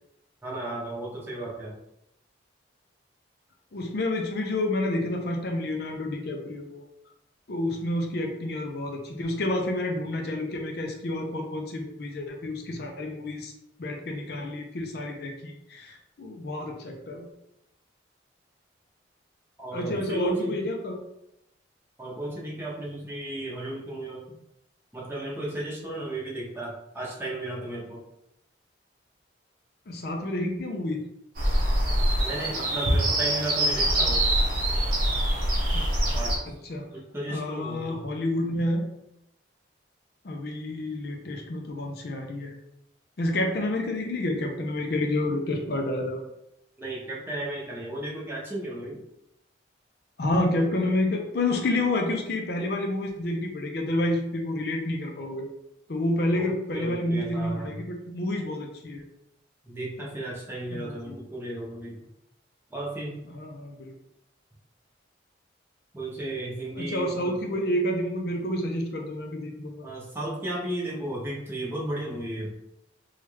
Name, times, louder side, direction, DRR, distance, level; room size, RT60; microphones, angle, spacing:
voice 1, 0.4-1.7 19.6-20.6 22.0-24.2 24.9-28.0 32.2-34.3 36.1-36.4 36.9-38.0 46.8-49.0 56.3-57.8 59.6-62.0 62.7-63.2 65.9-67.4 69.8-72.5, right 1 dB, 10° right, -5 dB, 0.7 m, -34 dB
voice 2, 3.7-6.8 7.5-13.5 13.8-17.3 19.7-20.9 29.9-31.0 35.7-35.8 36.5-36.9 37.3-38.9 40.2-42.5 43.2-46.2 50.2-55.5 55.9-59.0 60.7-61.2 63.3-63.9 66.8-69.9, left 1 dB, 55° left, 2 dB, 0.5 m, -29 dB
sound 1, 31.4-36.4, right 1 dB, 50° right, 0.8 m, -24 dB
3.0 x 2.3 x 3.1 m, 0.81 s
head